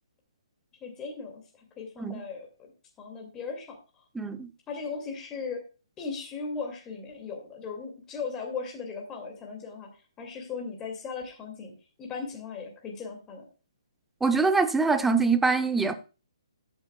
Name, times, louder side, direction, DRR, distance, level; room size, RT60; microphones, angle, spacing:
voice 1, 0.8-1.4 1.8-2.7 3.0-3.8 4.7-5.6 6.0-9.9 10.2-11.7 12.0-13.4, left 5 dB, 15° left, 2.3 m, -37 dB
voice 2, 4.1-4.5 14.2-15.9, right 4 dB, 5° right, 0.7 m, -24 dB
13.5 x 8.8 x 2.3 m
hypercardioid pair, 145°, 3 cm